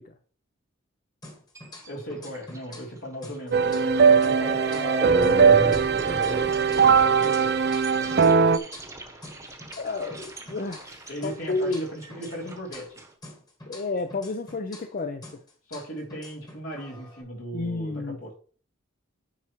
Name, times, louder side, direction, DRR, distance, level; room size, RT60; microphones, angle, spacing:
sound 1, 1.2-3.0 3.2-7.0 7.2-11.0 11.2-15.0 15.2-17.2, left 1 dB, 20° left, 1.5 m, -46 dB
sound 2, 1.5-1.9 2.3-2.6 3.0-3.1 3.9-13.0, right 1 dB, 15° right, 1.0 m, -35 dB
voice 1, 1.9-5.7 6.7-7.5 11.1-13.0 15.7-18.4, equal, 75° left, -1 dB, 3.2 m, -37 dB
sound 3, 3.5-8.6, right 6 dB, 50° right, 0.5 m, -20 dB
voice 2, 9.8-11.9 13.7-15.2 17.5-18.2, left 3 dB, 45° left, 7 dB, 0.5 m, -31 dB
9.3 x 5.6 x 3.1 m, 0.41 s
head